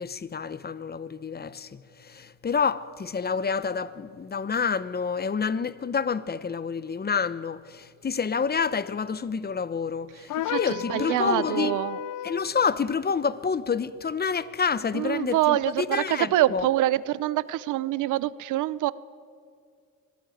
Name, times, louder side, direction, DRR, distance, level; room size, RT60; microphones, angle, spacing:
voice 1, 0.0-11.8 12.2-16.6, left 5 dB, 30° left, 0.9 m, -28 dB
sound 1, 10.3-12.5, left 12 dB, 80° left, 0.5 m, -33 dB
voice 2, 10.4-12.0 14.9-18.9, right 14 dB, 85° right, 0.7 m, -25 dB
25.5 x 16.5 x 9.3 m
cardioid pair, 90°, 30 cm